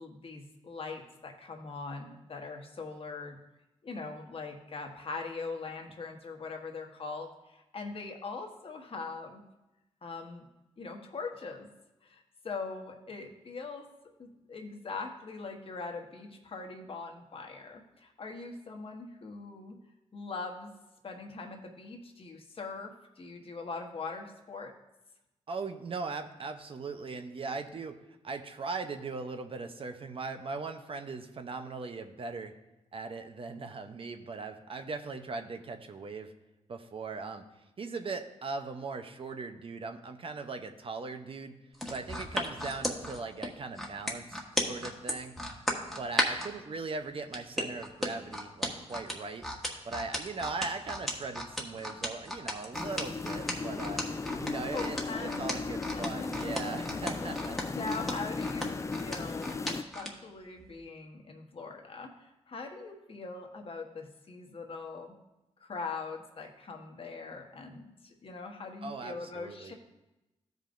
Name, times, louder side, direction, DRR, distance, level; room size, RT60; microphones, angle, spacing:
voice 1, 0.0-3.4 3.8-9.4 10.0-10.4 10.8-11.7 12.0-13.9 14.2-19.8 20.1-20.7 21.0-24.7 54.7-56.8 57.2-65.2 65.6-69.7, left 4 dB, 50° left, 2 dB, 1.2 m, -42 dB
voice 2, 25.5-28.0 28.2-32.5 32.9-36.3 36.7-37.4 37.8-41.6 41.9-45.3 46.0-49.5 49.8-54.0 54.4-57.6 68.8-69.7, right 4 dB, 50° right, 7 dB, 0.7 m, -39 dB
sound 1, 41.7-46.5 47.3-60.1 60.6-60.7, equal, ahead, 1.4 m, -34 dB
sound 2, 52.7-59.8, left 4 dB, 25° left, 0.4 m, -36 dB
14.0 x 5.2 x 2.6 m, 0.98 s
cardioid pair, 80°, 12 cm